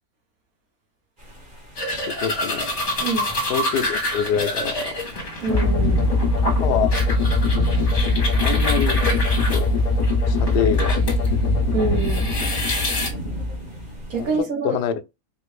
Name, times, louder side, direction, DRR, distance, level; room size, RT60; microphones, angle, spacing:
sound 1, 1.2-14.4, equal, 30° right, 1.6 m, -33 dB
sound 2, 1.8-11.3 11.7-13.1, left 1 dB, 50° left, 1.6 m, -28 dB
voice 1, 2.1-2.7 3.5-4.9 6.6-6.9 8.4-9.0 9.5-9.7 10.3-11.0 14.2-14.3 14.6-15.0, left 8 dB, 85° left, 1.2 m, -25 dB
voice 2, 5.4-6.0 11.7-12.3 14.1-14.8, right 3 dB, 65° right, 1.5 m, -25 dB
sound 3, 5.5-13.7, left 2 dB, 25° left, 1.3 m, -21 dB
4.5 x 2.5 x 3.3 m
omnidirectional pair, 1.7 m